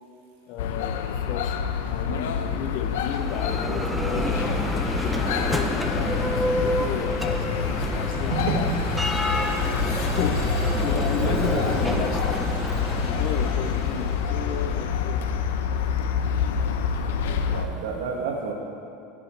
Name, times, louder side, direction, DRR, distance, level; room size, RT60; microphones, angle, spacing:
voice 1, 0.5-1.6 1.9-8.7 9.8-12.5 13.0-15.3, left 8 dB, 45° left, 9 dB, 0.6 m, -34 dB
sound 1, 0.6-17.7, left 6 dB, 85° left, 0.6 m, -27 dB
voice 2, 2.1-2.5 8.3-8.8 11.2-12.1 17.5-18.5, right 5 dB, 90° right, 1 dB, 1.7 m, -30 dB
Bell, 2.8-14.7, equal, ahead, 0.6 m, -29 dB
sound 2, 7.3-15.1, right 3 dB, 50° right, 1.5 m, -44 dB
16.5 x 7.8 x 3.3 m, 2.5 s
supercardioid pair, 155°, 0 cm